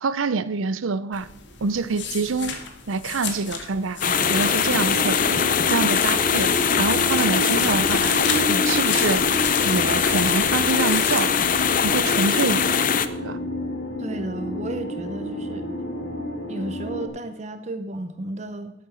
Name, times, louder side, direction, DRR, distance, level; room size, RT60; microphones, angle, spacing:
voice 1, 0.0-1.3 1.6-2.5 2.9-5.3 5.7-6.5 6.8-8.2 8.5-9.2 9.6-11.3 11.8-12.7 13.2-13.4, right 4 dB, 80° right, 17 dB, 0.6 m, -25 dB
sound 1, 1.1-12.1, left 7 dB, 60° left, 1.7 m, -34 dB
sound 2, 4.0-13.1, left 7 dB, 40° left, 0.6 m, -22 dB
sound 3, 4.2-17.1, equal, 75° left, 2.7 m, -31 dB
voice 2, 14.0-15.7 16.5-18.7, right 1 dB, 35° right, 10 dB, 0.7 m, -33 dB
11.0 x 8.6 x 6.3 m, 0.84 s
head